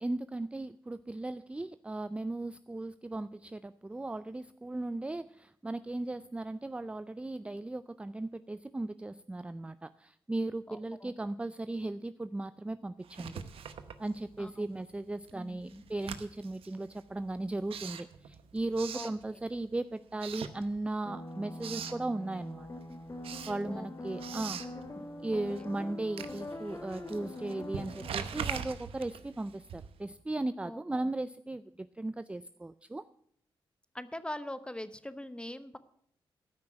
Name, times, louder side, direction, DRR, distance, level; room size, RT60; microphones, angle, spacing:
voice 1, 0.0-13.4 14.0-22.7 23.5-24.6 25.0-33.0, right 2 dB, 10° right, 14 dB, 0.4 m, -37 dB
voice 2, 10.7-11.1 14.4-14.8 15.3-15.8 18.9-19.1 23.7-24.4 25.3-25.7 30.6-31.1 33.9-35.8, left 1 dB, 10° left, 12 dB, 0.9 m, -43 dB
Writing, 13.0-14.6 14.9-19.7 20.1-21.1 21.4-22.1 22.5-30.1, right 7 dB, 85° right, 0.8 m, -43 dB
sound 1, 21.0-28.1, left 1 dB, 35° left, 1.7 m, -43 dB
13.5 x 6.0 x 7.4 m, 0.68 s
cardioid pair, 65°, 9 cm